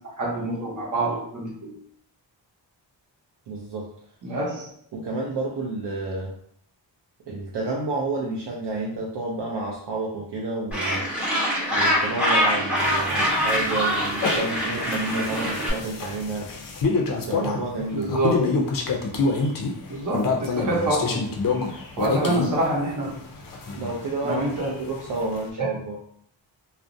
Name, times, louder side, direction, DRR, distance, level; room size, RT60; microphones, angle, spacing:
voice 1, 0.2-1.7 4.2-4.7 17.9-18.5 19.9-21.2 22.0-23.1 24.2-24.7 25.6-25.7, right 2 dB, 40° right, -4 dB, 0.8 m, -26 dB
voice 2, 3.5-3.9 4.9-6.4 7.3-11.1 11.7-16.5 17.3-18.2 22.0-22.3 23.8-26.0, right 2 dB, 65° right, -3 dB, 0.5 m, -30 dB
Gull seagull, 10.7-15.7, equal, 5° right, 0.6 m, -24 dB
sound 1, 12.8-25.4, left 4 dB, 50° left, 0.4 m, -28 dB
2.4 x 2.1 x 2.5 m, 0.64 s
wide cardioid pair, 150°, 45 cm